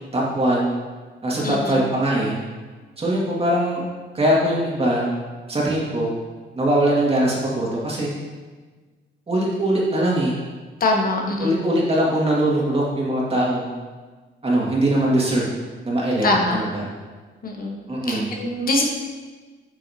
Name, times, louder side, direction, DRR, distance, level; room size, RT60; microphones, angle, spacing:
voice 1, 0.1-0.7 1.2-2.4 3.0-3.8 4.1-5.1 5.5-6.1 6.6-8.1 9.3-10.3 11.4-13.7 14.4-15.4 15.8-16.9 17.9-18.2, right 1 dB, 30° right, -4 dB, 2.1 m, -21 dB
voice 2, 1.4-1.8 10.8-11.5 16.2-16.6 17.4-17.7 18.1-18.8, left 2 dB, 45° left, 0 dB, 1.1 m, -22 dB
8.2 x 5.5 x 2.8 m, 1.4 s
cardioid pair, 90°, 20 cm